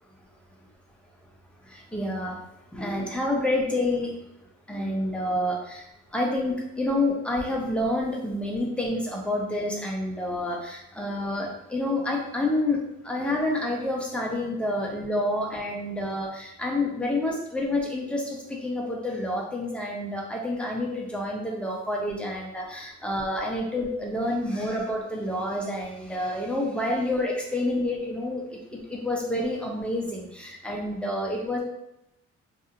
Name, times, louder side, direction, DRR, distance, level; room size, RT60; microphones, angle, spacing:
voice 1, 1.6-2.4 2.7-4.2 4.7-31.6, left 1 dB, 5° left, -2 dB, 0.7 m, -28 dB
2.7 x 2.6 x 2.5 m, 0.84 s
cardioid pair, 90°, 30 cm